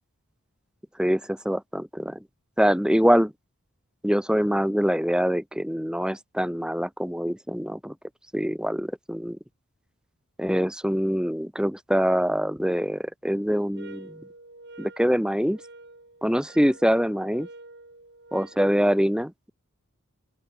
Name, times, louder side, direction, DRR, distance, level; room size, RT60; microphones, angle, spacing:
voice 1, 1.0-2.2 2.6-3.3 4.0-7.9 8.3-9.4 10.4-14.2 14.8-15.6 16.2-17.5 18.3-19.5, equal, 5° right, 2.1 m, -24 dB
sound 1, 13.7-18.7, right 2 dB, 50° right, 6.6 m, -48 dB
open air
head